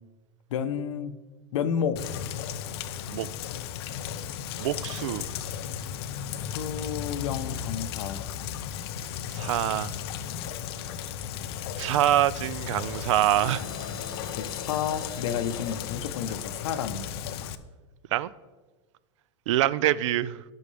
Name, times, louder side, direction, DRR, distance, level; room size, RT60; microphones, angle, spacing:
voice 1, 0.5-1.2 1.5-2.0 6.4-8.3 14.4-17.1, left 8 dB, 80° left, 0.9 m, -31 dB
Rain, 2.0-17.6, left 9 dB, 55° left, 0.6 m, -35 dB
voice 2, 4.6-5.3 9.3-10.0 11.8-13.7 18.1-18.3 19.5-20.4, right 13 dB, 70° right, 0.5 m, -25 dB
sound 1, 13.1-16.7, left 4 dB, 35° left, 3.1 m, -44 dB
18.0 x 6.4 x 3.4 m
supercardioid pair, 170°, 16 cm